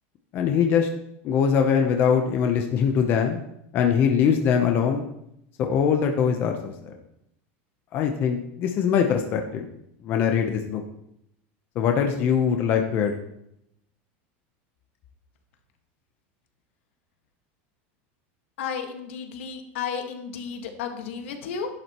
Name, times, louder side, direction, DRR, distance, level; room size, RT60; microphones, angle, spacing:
voice 1, 0.3-0.9 1.2-3.4 3.7-5.0 5.6-7.0 7.9-9.7 10.0-10.8 11.8-13.1, left 7 dB, 30° left, 4 dB, 0.8 m, -22 dB
voice 2, 18.6-21.7, left 6 dB, 80° left, 4 dB, 1.7 m, -33 dB
11.0 x 11.0 x 3.1 m, 0.78 s
supercardioid pair, 170°, 7 cm